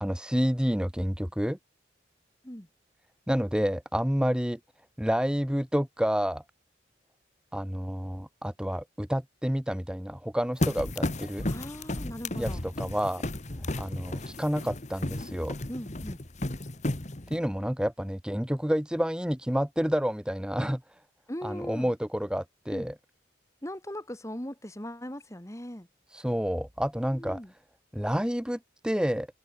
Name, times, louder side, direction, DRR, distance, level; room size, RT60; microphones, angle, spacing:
voice 1, 0.0-1.6 3.3-4.6 5.0-6.4 7.5-11.5 12.3-13.2 13.8-15.5 17.3-20.8 21.4-22.9 26.1-27.4 27.9-29.3, equal, 5° right, 1.2 m, -29 dB
sound 1, 10.6-17.4, left 1 dB, 40° left, 1.5 m, -33 dB
voice 2, 11.5-12.6 15.7-16.2 21.3-21.9 22.7-22.9 23.6-25.9 27.2-27.5, equal, 15° left, 2.0 m, -39 dB
head